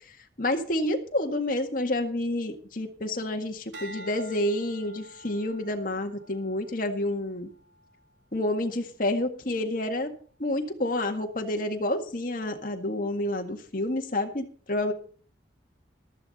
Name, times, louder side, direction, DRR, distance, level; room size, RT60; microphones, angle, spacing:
voice 1, 0.4-7.5 8.3-10.1 10.4-14.9, left 1 dB, 50° left, 4 dB, 1.8 m, -29 dB
sound 1, 3.7-8.2 8.8-9.2, right 1 dB, 90° right, 2.5 m, -49 dB
14.0 x 13.0 x 4.2 m, 0.43 s
head